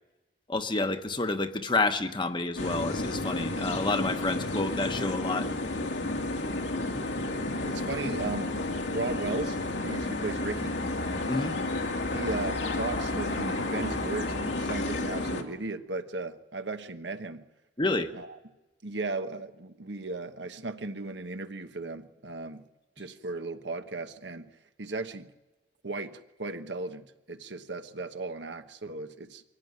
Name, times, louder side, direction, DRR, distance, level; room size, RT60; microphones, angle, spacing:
voice 1, 0.5-5.5 11.3-11.5 17.8-18.1, left 2 dB, 25° left, 1.1 m, -29 dB
sound 1, 2.6-15.4, left 2 dB, 90° left, 2.5 m, -31 dB
voice 2, 7.6-8.5 8.9-10.8 12.1-17.5 18.1-18.3 18.8-22.6 23.0-24.5 24.8-25.3 25.8-29.4, right 3 dB, 85° right, 1.3 m, -36 dB
23.5 x 16.5 x 9.5 m
head